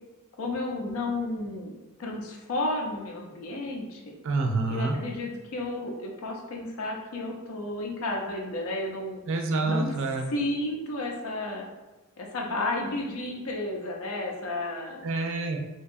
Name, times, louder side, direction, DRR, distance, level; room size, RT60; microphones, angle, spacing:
voice 1, 0.4-1.7 2.0-4.0 4.7-9.2 9.7-9.9 10.3-11.6 12.2-15.0, left 2 dB, 70° left, 0 dB, 0.5 m, -32 dB
voice 2, 4.2-5.0 9.3-10.3 15.0-15.6, right 3 dB, 60° right, 3 dB, 0.4 m, -27 dB
2.7 x 2.2 x 2.5 m, 1.1 s
head